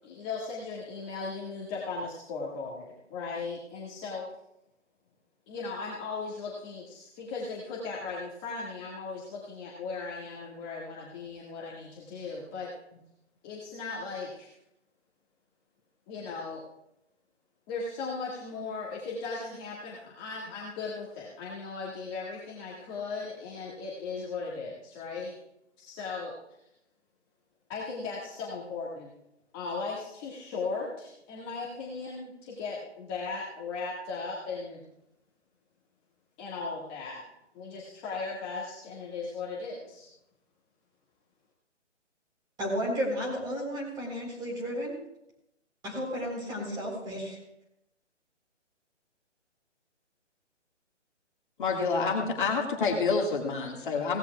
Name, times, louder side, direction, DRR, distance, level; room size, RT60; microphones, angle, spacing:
voice 1, 0.0-4.3 5.5-13.0 13.4-14.5 16.1-16.6 17.7-25.3 25.8-26.3 27.7-29.1 29.5-34.8 36.4-37.2 37.5-40.1, left 4 dB, 20° left, -5 dB, 1.8 m, -37 dB
voice 2, 42.6-44.9 45.8-47.4, equal, 10° right, -2 dB, 3.8 m, -33 dB
voice 3, 51.6-54.2, left 4 dB, 45° left, 0 dB, 1.9 m, -28 dB
17.5 x 16.5 x 2.3 m, 0.84 s
figure-of-eight pair, 140°, 37 cm